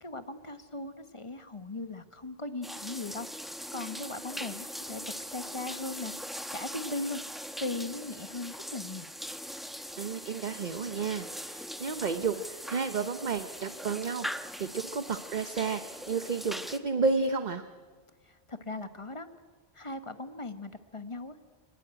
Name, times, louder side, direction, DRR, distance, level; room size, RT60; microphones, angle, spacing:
voice 1, 0.0-3.3 3.7-6.1 6.5-7.2 7.6-9.1 18.2-19.3 19.7-21.5, left 2 dB, 30° left, 10 dB, 1.2 m, -38 dB
sound 1, 2.6-16.8, equal, ahead, 0.9 m, -41 dB
voice 2, 10.0-14.3 14.6-17.6, right 4 dB, 45° right, 10 dB, 0.9 m, -31 dB
25.5 x 19.0 x 8.9 m, 1.5 s
omnidirectional pair, 1.1 m